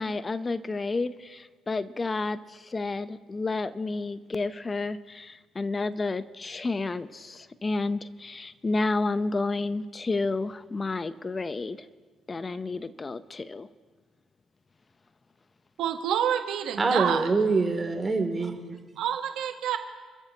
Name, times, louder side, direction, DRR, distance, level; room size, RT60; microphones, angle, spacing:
voice 1, 0.0-11.8 12.3-13.7, left 3 dB, 30° left, 13 dB, 0.8 m, -30 dB
voice 2, 15.8-17.3 19.0-19.8, right 9 dB, 70° right, 6 dB, 1.2 m, -28 dB
voice 3, 16.8-18.8, right 3 dB, 35° right, 4 dB, 2.8 m, -25 dB
28.5 x 14.0 x 2.9 m, 1.5 s
hypercardioid pair, 55°, 0 cm